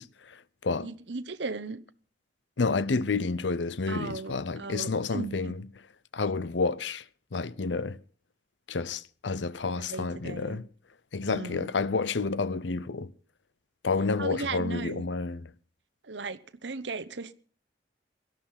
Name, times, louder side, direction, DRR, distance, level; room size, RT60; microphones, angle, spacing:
voice 1, 0.0-0.9 2.6-5.6 6.1-7.0 7.3-8.0 8.7-10.7 11.1-13.1 13.8-15.5, left 4 dB, 85° left, 0.7 m, -30 dB
voice 2, 0.8-1.8 3.9-5.5 9.9-10.6 11.3-11.7 14.2-15.0 16.0-17.3, right 3 dB, 80° right, 0.9 m, -37 dB
17.5 x 12.5 x 5.7 m
head